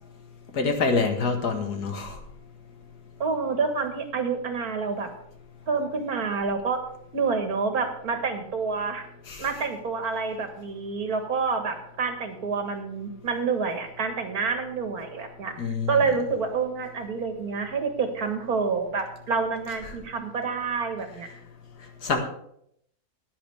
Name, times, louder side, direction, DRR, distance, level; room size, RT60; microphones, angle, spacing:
voice 1, 0.5-2.2 9.3-9.5 15.6-16.0 22.0-22.2, left 4 dB, 80° left, 4 dB, 2.1 m, -26 dB
voice 2, 3.2-5.1 5.7-6.8 7.1-9.1 9.4-21.3, right 5 dB, 70° right, 6 dB, 1.9 m, -28 dB
16.0 x 9.9 x 3.4 m, 0.71 s
omnidirectional pair, 1.7 m